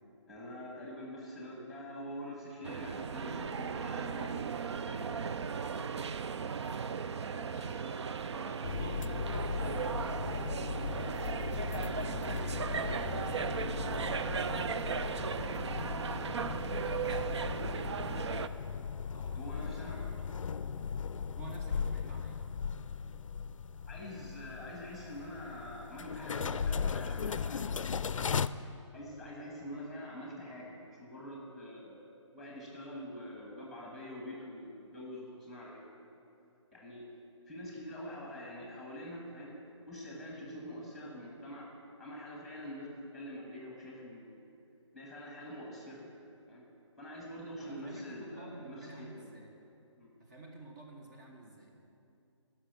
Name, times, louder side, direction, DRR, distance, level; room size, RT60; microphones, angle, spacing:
voice 1, 0.3-5.3 19.3-20.0 23.9-27.7 28.9-32.0 32.3-35.9 36.1-36.3 36.7-37.0 37.5-39.6 39.9-41.7 42.0-44.5 44.9-46.0 46.5-46.6 47.0-49.3 50.0-50.1, equal, ahead, -3 dB, 1.6 m, -45 dB
sound 1, 2.6-18.5, right 6 dB, 60° right, 0.5 m, -37 dB
voice 2, 7.3-10.6 11.4-13.5 15.4-18.2 19.1-20.0 20.5-20.7 21.3-22.4 47.6-49.5 50.2-51.8, right 2 dB, 35° right, 0 dB, 1.2 m, -51 dB
sound 2, 8.6-28.5, left 6 dB, 85° left, 0.4 m, -37 dB
15.0 x 6.3 x 6.7 m, 2.6 s
hypercardioid pair, 155°, 16 cm